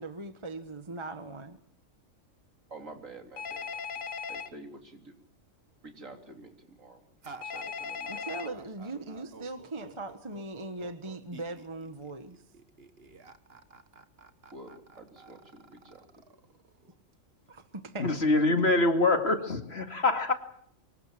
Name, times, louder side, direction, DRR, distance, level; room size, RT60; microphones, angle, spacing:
voice 1, 0.0-1.6 8.1-12.4 17.5-18.1, right 2 dB, 20° right, 1.4 m, -40 dB
voice 2, 2.7-5.2 5.8-7.1 7.4-8.6 8.9-9.0 14.5-16.0, right 2 dB, 75° right, 3.8 m, -49 dB
Telephone, 3.4-4.5 7.4-8.5, left 6 dB, 80° left, 1.6 m, -37 dB
sound 1, 7.2-17.2, right 4 dB, 50° right, 1.7 m, -51 dB
voice 3, 18.0-20.3, left 2 dB, 50° left, 2.5 m, -25 dB
24.5 x 22.5 x 7.6 m
omnidirectional pair, 1.4 m